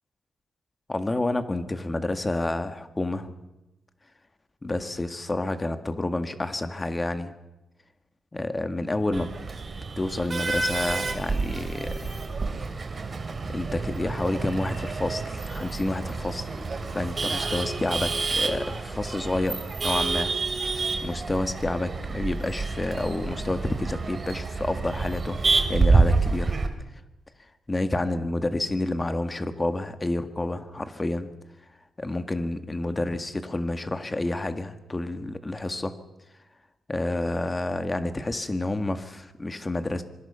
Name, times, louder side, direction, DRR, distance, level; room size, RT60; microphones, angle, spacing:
voice 1, 0.9-3.3 4.6-7.3 8.3-9.3 10.0-12.2 13.5-16.4 16.9-20.3 21.0-25.4 25.7-26.5 27.7-31.3 32.0-35.9 36.9-40.0, left 2 dB, 20° left, 9 dB, 1.8 m, -29 dB
Male speech man speaking / Laughter / Chatter, 9.1-26.7, right 4 dB, 35° right, 2.9 m, -28 dB
26.0 x 24.5 x 5.7 m, 0.98 s
wide cardioid pair, 140°, 0 cm